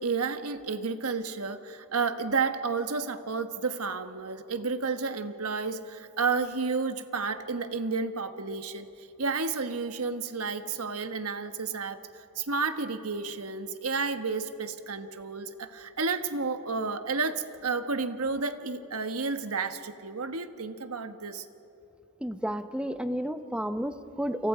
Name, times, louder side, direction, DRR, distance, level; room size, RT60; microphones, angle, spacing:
voice 1, 0.0-21.5, right 4 dB, 85° right, 8 dB, 1.3 m, -31 dB
voice 2, 22.2-24.5, equal, 5° right, 9 dB, 0.8 m, -31 dB
29.5 x 27.5 x 5.0 m, 2.7 s
head